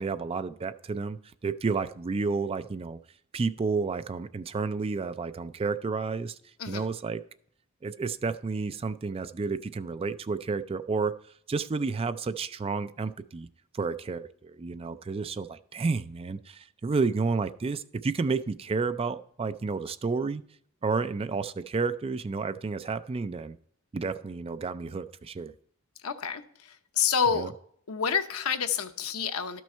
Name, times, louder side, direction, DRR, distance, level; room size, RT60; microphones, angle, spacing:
voice 1, 0.0-3.0 3.3-6.4 6.7-7.2 7.8-11.2 11.5-13.5 13.7-20.4 20.8-23.6 23.9-25.5 27.3-27.5, right 4 dB, 25° right, 0.3 m, -31 dB
voice 2, 26.0-27.5 27.9-29.6, left 6 dB, 80° left, 0.8 m, -28 dB
12.5 x 6.2 x 4.4 m
head